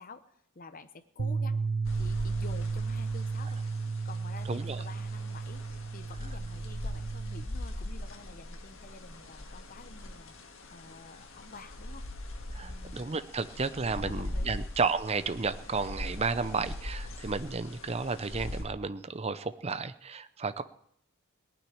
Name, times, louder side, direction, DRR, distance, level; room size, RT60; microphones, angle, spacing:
voice 1, 0.0-1.6 2.0-3.6 4.0-5.6 5.9-10.4 10.7-12.1 12.6-13.2 14.0-14.7, left 3 dB, 40° left, 9 dB, 0.9 m, -49 dB
Bass guitar, 1.2-7.4, right 4 dB, 85° right, 0.7 m, -33 dB
sound 1, 1.8-18.6, left 1 dB, 65° left, 1.8 m, -41 dB
voice 2, 4.5-4.8 12.5-20.6, right 4 dB, 30° right, 12 dB, 0.6 m, -32 dB
18.5 x 6.2 x 10.0 m, 0.71 s
head